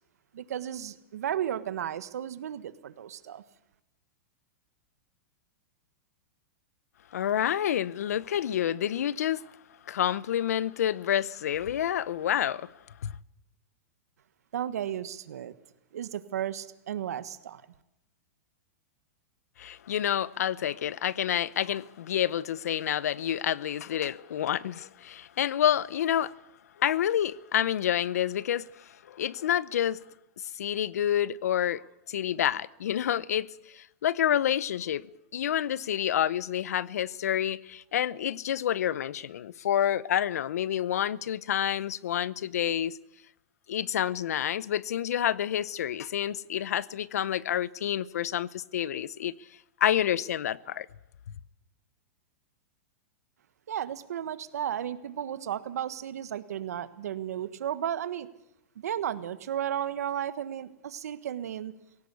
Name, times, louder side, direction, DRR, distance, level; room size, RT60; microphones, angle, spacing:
voice 1, 0.3-3.4 14.5-15.5 15.9-17.6 53.7-58.3 58.7-61.7, right 10 dB, 85° right, 1.4 m, -34 dB
voice 2, 7.1-9.5 9.9-12.7 13.0-13.1 19.6-26.3 26.8-30.0 30.6-35.1 35.3-43.0 43.7-49.3 49.8-50.9, left 10 dB, 85° left, 0.8 m, -28 dB
19.5 x 17.5 x 8.3 m
supercardioid pair, 150°, 8 cm